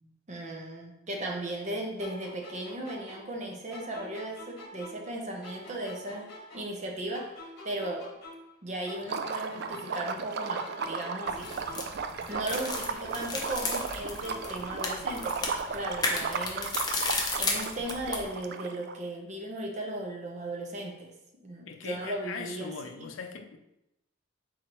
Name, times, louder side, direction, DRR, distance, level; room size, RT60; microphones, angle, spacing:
voice 1, 0.0-8.0 8.6-11.5 12.3-16.7 17.4-21.1 21.4-22.7 23.0-23.1, right 1 dB, 35° right, 0 dB, 0.7 m, -36 dB
sound 1, 2.0-5.1 5.4-8.6 8.8-12.0 12.3-15.4, left 1 dB, 50° left, 1.2 m, -48 dB
Liquid, 9.0-18.9, right 5 dB, 50° right, 0.3 m, -35 dB
sound 2, 11.3-18.3, left 3 dB, 20° left, 0.6 m, -34 dB
voice 2, 21.7-23.6, left 5 dB, 70° left, 7 dB, 0.4 m, -40 dB
4.5 x 3.9 x 3.0 m, 0.87 s
head